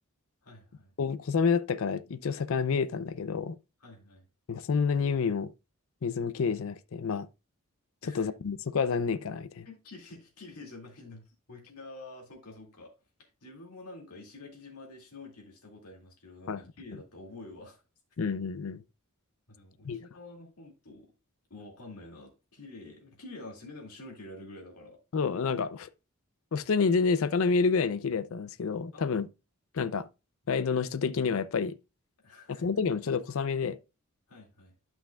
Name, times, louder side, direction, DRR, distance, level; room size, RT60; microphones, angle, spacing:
voice 1, 0.4-0.9 3.8-4.3 8.0-8.3 9.6-12.9 13.2-17.8 19.5-21.1 21.5-25.0 28.9-29.2 32.2-32.7 34.3-34.7, left 2 dB, 90° left, 2.2 m, -48 dB
voice 2, 1.0-3.6 4.5-5.5 6.0-7.3 8.0-9.7 16.5-16.6 18.2-18.8 19.8-20.0 25.1-25.9 26.5-29.3 29.7-30.1 30.5-31.8 32.6-33.8, left 5 dB, 65° left, 0.5 m, -28 dB
11.0 x 5.8 x 2.3 m
head